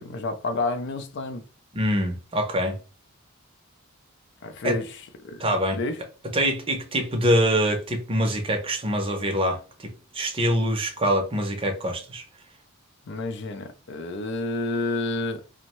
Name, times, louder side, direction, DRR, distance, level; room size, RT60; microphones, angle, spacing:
voice 1, 0.0-1.4 4.4-6.0 13.1-15.5, left 2 dB, 55° left, 0.4 m, -30 dB
voice 2, 1.7-2.8 4.6-4.8 5.4-5.8 6.3-12.2, equal, 25° right, 0.6 m, -24 dB
2.6 x 2.1 x 2.9 m
head